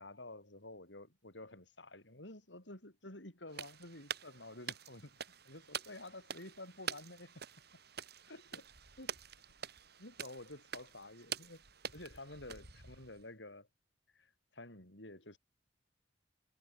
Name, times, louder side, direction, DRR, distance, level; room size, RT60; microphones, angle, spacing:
voice 1, 0.0-7.3 8.3-8.7 9.0-9.2 10.0-11.6 11.9-13.7 14.1-15.4, left 2 dB, 70° left, 7.2 m, -51 dB
sound 1, 3.5-13.2, right 7 dB, 60° right, 5.9 m, -47 dB
head